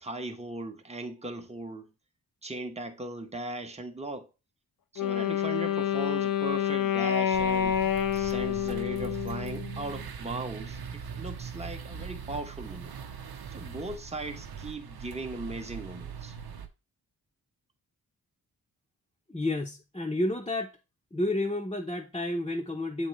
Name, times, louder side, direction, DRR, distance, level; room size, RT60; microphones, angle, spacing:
voice 1, 0.0-1.9 2.4-4.3 4.9-7.8 8.1-12.9 13.5-16.4, right 2 dB, 15° right, 1.0 m, -38 dB
Wind instrument woodwind instrument, 5.0-10.0, left 9 dB, 60° left, 0.7 m, -28 dB
sound 1, 7.3-16.7, right 6 dB, 70° right, 0.8 m, -41 dB
voice 2, 19.3-20.8 21.1-23.1, left 1 dB, 15° left, 0.8 m, -30 dB
7.9 x 3.8 x 3.2 m
cardioid pair, 60°, 38 cm